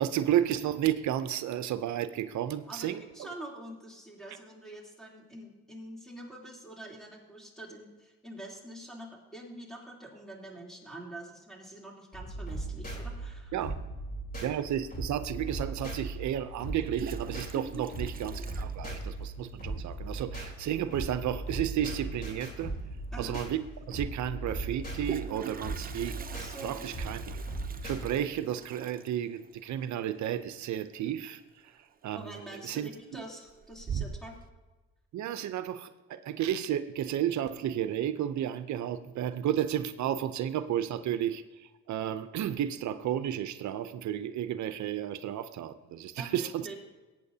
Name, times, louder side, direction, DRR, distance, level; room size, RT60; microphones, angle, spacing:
voice 1, 0.0-3.3 13.5-13.8 14.4-22.7 23.2-23.6 23.9-26.2 26.6-27.4 27.8-33.2 35.1-46.7, right 11 dB, 70° right, 12 dB, 0.6 m, -32 dB
voice 2, 2.7-13.6 17.5-17.8 23.1-23.4 26.3-26.8 32.1-34.3 46.2-46.8, right 1 dB, ahead, -2 dB, 3.2 m, -45 dB
sound 1, 12.1-28.0, right 2 dB, 30° left, 3.7 m, -38 dB
Toilet flush, 15.3-15.4 16.6-19.5 19.7-19.8 20.1-20.2 20.5-20.9 22.6-22.7 23.0-23.1 24.7-31.4 31.6-32.1 32.5-33.0 33.4-34.4, right 6 dB, 30° right, 0.7 m, -42 dB
18.5 x 8.8 x 2.8 m, 1.2 s
cardioid pair, 90°, 30 cm